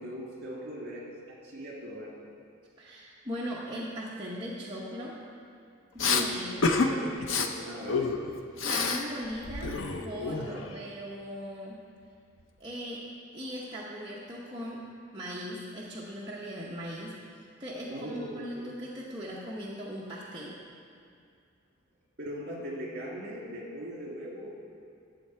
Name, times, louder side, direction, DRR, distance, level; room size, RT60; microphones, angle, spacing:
voice 1, 0.0-2.2 6.1-8.1 10.5-10.6 17.9-18.7 22.2-24.5, equal, 55° right, -3 dB, 2.2 m, -40 dB
voice 2, 2.8-5.1 5.9-6.7 8.6-9.7 10.0-11.8 12.6-13.0 13.3-14.8 15.1-20.6, equal, 25° right, -6 dB, 0.9 m, -39 dB
Respiratory sounds, 6.0-6.2 6.6-6.9 7.2-7.5 7.9-9.0 9.3-10.7, left 4 dB, 90° left, 0.7 m, -28 dB
11.5 x 7.3 x 4.5 m, 2.3 s
head